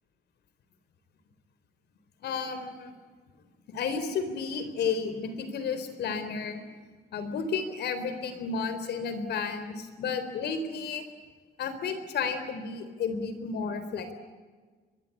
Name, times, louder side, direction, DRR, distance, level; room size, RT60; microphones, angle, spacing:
voice 1, 2.2-2.9 3.7-6.6 7.1-11.0 11.6-14.1, left 5 dB, 70° left, 10 dB, 4.0 m, -32 dB
24.5 x 22.0 x 8.6 m, 1.4 s
cardioid pair, 160°, 18 cm